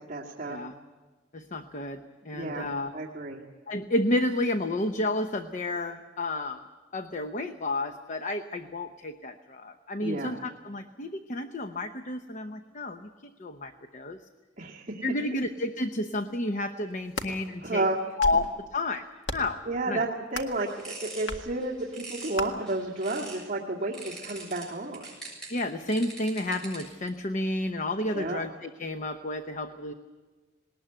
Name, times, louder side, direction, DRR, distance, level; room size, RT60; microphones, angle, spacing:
voice 1, 0.1-0.6 2.3-2.7 2.9-3.4 10.0-10.3 14.6-15.1 17.6-18.0 19.7-25.1 28.1-28.4, right 2 dB, 35° right, -5 dB, 2.0 m, -31 dB
voice 2, 1.3-2.9 3.7-6.6 6.9-14.2 15.0-17.8 18.2-19.0 19.3-19.6 19.9-20.0 25.5-29.9, left 2 dB, 40° left, 8 dB, 0.8 m, -31 dB
sound 1, 16.9-17.3 18.0-18.5 19.2-19.6 20.3-20.6 21.3-21.5 22.4-22.5, left 2 dB, 65° left, 1.9 m, -35 dB
sound 2, 20.5-23.5 23.9-27.1, right 3 dB, 5° left, 7.2 m, -44 dB
20.0 x 19.5 x 9.0 m, 1.4 s
head